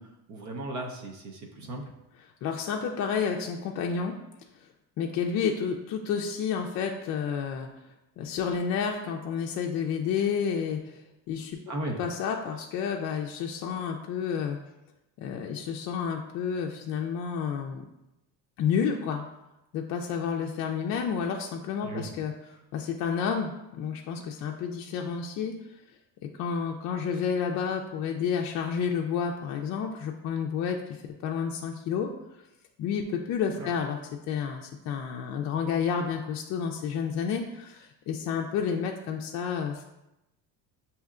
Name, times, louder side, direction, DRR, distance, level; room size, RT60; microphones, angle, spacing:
voice 1, 0.0-1.9 11.7-12.0 21.8-22.1 33.6-33.7, right 1 dB, 50° right, 2 dB, 0.8 m, -36 dB
voice 2, 2.4-4.2 4.6-4.7 5.0-7.7 8.2-11.6 12.0-14.6 15.2-17.9 18.6-19.3 19.7-22.3 22.7-25.5 26.2-32.1 32.8-34.0 34.3-39.8, left 6 dB, 50° left, 1 dB, 0.4 m, -30 dB
6.2 x 2.8 x 2.4 m, 0.91 s
cardioid pair, 115°, 37 cm